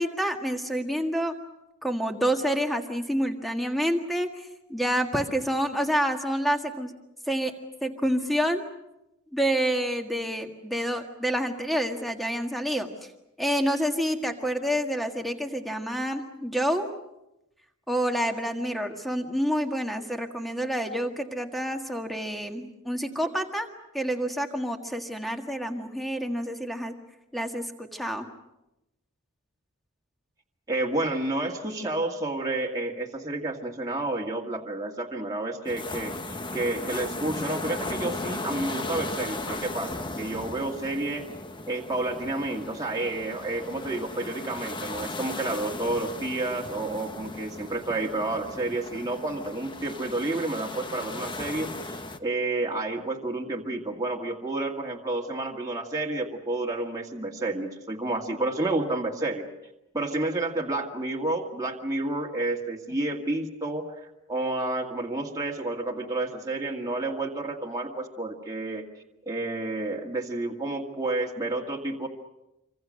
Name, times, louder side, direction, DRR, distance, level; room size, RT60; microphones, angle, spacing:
voice 1, 0.0-1.3 1.8-4.3 4.7-6.9 7.3-7.5 7.8-8.7 9.3-12.9 13.4-16.9 17.9-23.7 23.9-26.9 27.3-28.3, equal, ahead, 4 dB, 1.8 m, -28 dB
voice 2, 30.7-36.1 36.5-41.3 41.7-59.4 59.9-68.9 69.3-72.1, right 2 dB, 15° right, -1 dB, 2.0 m, -30 dB
sound 1, 35.6-52.2, left 2 dB, 20° left, 1.0 m, -36 dB
26.0 x 25.5 x 6.4 m, 0.90 s
head